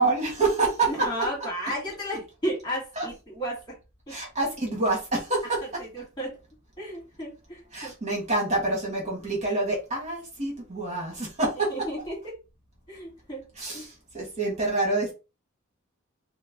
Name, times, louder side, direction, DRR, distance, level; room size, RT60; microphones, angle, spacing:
voice 1, 0.0-1.1 3.0-3.1 4.1-5.6 7.7-11.7 13.6-15.1, right 2 dB, 30° right, 1.6 m, -27 dB
voice 2, 0.9-3.8 4.1-4.2 5.8-6.4 6.8-7.9 11.7-12.4 12.9-13.5 13.7-13.9, equal, 20° left, 1.8 m, -33 dB
4.6 x 2.1 x 3.5 m
head